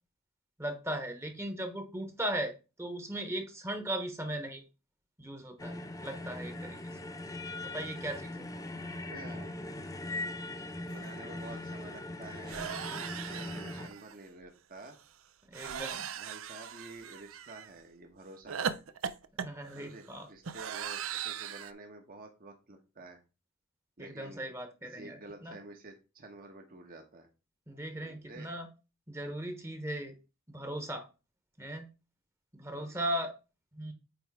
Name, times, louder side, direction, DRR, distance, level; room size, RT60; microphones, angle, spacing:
voice 1, 0.6-2.5 2.8-4.6 5.2-6.8 7.6-8.5 15.5-16.1 19.4-20.3 24.0-25.6 27.7-28.7 29.1-30.2 30.5-31.1 31.6-31.9 32.5-33.3 33.7-33.9, right 1 dB, 15° right, 6 dB, 1.1 m, -38 dB
sound 1, 5.6-13.9, left 2 dB, 15° left, 0.9 m, -40 dB
voice 2, 9.1-9.6 10.9-12.7 13.3-15.0 15.7-18.8 19.7-23.2 24.0-24.5 24.8-27.3 28.0-28.5 32.7-33.0, right 2 dB, 45° right, 3 dB, 1.2 m, -50 dB
sound 2, 11.0-11.1 11.4-11.6 12.5-14.1 15.5-17.7 18.5-21.7, right 7 dB, 70° right, 0.5 m, -39 dB
8.7 x 3.3 x 4.7 m, 0.30 s
head